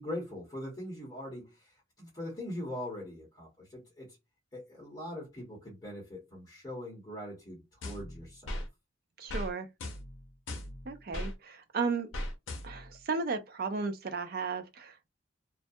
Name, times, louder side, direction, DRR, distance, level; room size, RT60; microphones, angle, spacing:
voice 1, 0.0-4.2 4.5-8.6, left 1 dB, 20° left, 1.0 m, -42 dB
sound 1, 7.8-8.7 9.3-9.5 9.8-11.3 12.1-12.9, left 1 dB, 90° left, 0.6 m, -38 dB
voice 2, 9.2-9.7 10.9-12.1 12.6-15.1, right 4 dB, 50° right, 0.4 m, -34 dB
2.3 x 2.2 x 2.6 m
head